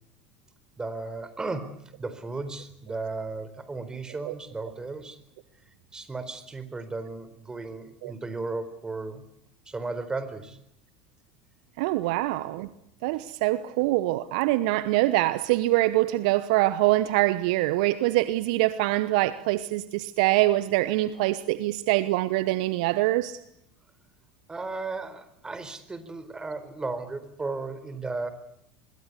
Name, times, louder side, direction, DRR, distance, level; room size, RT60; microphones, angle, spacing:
voice 1, 0.8-1.7 2.0-5.2 5.9-9.2 9.7-10.6 12.0-12.2 13.1-13.2 24.5-28.3, right 3 dB, 15° right, 4.3 m, -35 dB
voice 2, 11.8-12.7 13.0-23.4, right 17 dB, 60° right, 1.0 m, -24 dB
25.5 x 22.5 x 8.3 m
figure-of-eight pair, 75°, 5 cm